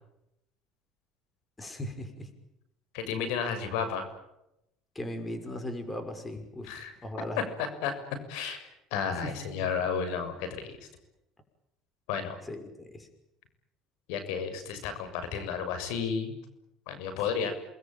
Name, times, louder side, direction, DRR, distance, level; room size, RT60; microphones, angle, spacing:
voice 1, 1.6-2.3 4.9-6.8 7.0-7.4 9.2-9.3 12.4-13.1, left 1 dB, 15° left, 7 dB, 5.9 m, -38 dB
voice 2, 2.9-4.1 6.6-6.9 7.6-7.9 8.3-8.6 8.9-10.7 12.1-12.4 14.1-16.4 16.9-17.5, left 6 dB, 85° left, 10 dB, 6.8 m, -32 dB
29.0 x 21.0 x 9.1 m, 0.85 s
supercardioid pair, 100°, 0 cm